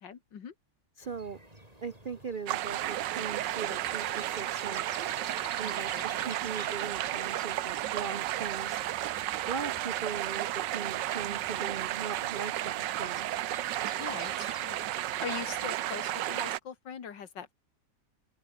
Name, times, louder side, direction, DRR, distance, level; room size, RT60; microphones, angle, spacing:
voice 1, 0.0-0.5 5.9-6.2 14.0-14.9 15.2-17.5, left 7 dB, 75° left, 2.4 m, -41 dB
sound 1, 1.0-15.7, right 1 dB, 20° right, 7.5 m, -51 dB
voice 2, 1.0-1.4 1.8-4.9 5.6-8.8 9.5-13.3, right 5 dB, 55° right, 0.6 m, -39 dB
sound 2, 2.5-16.6, right 14 dB, 75° right, 1.4 m, -33 dB
Guitar, 2.8-9.8 10.2-10.3, left 3 dB, 45° left, 4.9 m, -55 dB
open air
omnidirectional pair, 2.0 m